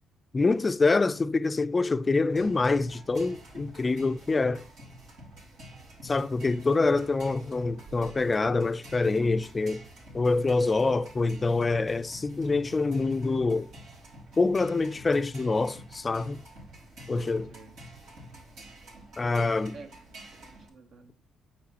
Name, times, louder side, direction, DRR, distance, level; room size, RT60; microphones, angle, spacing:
voice 1, 0.3-4.6 6.0-9.8 10.1-13.7 14.4-16.4 17.1-17.5 19.2-19.7, left 3 dB, 30° left, 0.4 m, -26 dB
sound 1, 2.3-20.7, right 1 dB, 90° right, 4.5 m, -48 dB
voice 2, 17.1-17.8 19.7-21.4, right 4 dB, 65° right, 1.4 m, -51 dB
9.2 x 7.2 x 2.9 m
cardioid pair, 90°, 0 cm